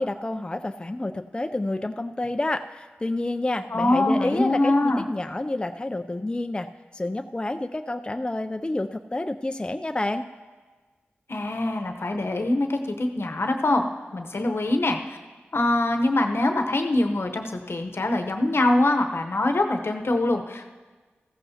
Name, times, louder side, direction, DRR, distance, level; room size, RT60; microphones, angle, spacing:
voice 1, 0.0-10.3, left 2 dB, 20° left, 7 dB, 0.4 m, -29 dB
voice 2, 3.7-5.1 11.3-15.2 15.5-20.7, left 2 dB, 70° left, 5 dB, 0.9 m, -24 dB
15.0 x 14.0 x 2.8 m, 1.4 s
cardioid pair, 45°, 4 cm